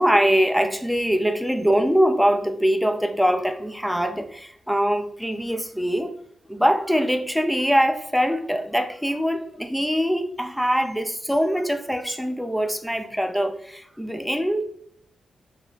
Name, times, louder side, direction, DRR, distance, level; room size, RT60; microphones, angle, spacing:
voice 1, 0.0-6.1 6.5-14.6, equal, ahead, 6 dB, 0.4 m, -23 dB
3.0 x 2.3 x 3.1 m, 0.67 s
cardioid pair, 75°, 0 cm